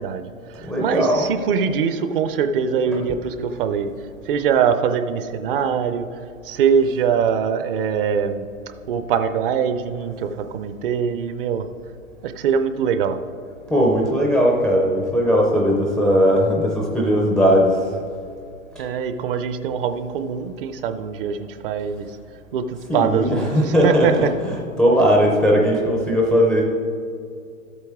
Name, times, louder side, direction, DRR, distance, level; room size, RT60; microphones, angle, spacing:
voice 1, 0.0-3.9 4.3-8.5 8.9-11.7 12.2-13.2 18.8-22.1 22.5-24.3, right 7 dB, 40° right, 9 dB, 0.6 m, -23 dB
voice 2, 0.6-1.3 13.7-17.8 22.9-26.6, equal, ahead, -2 dB, 0.4 m, -18 dB
13.0 x 8.2 x 3.6 m, 2.4 s
hypercardioid pair, 125°, 42 cm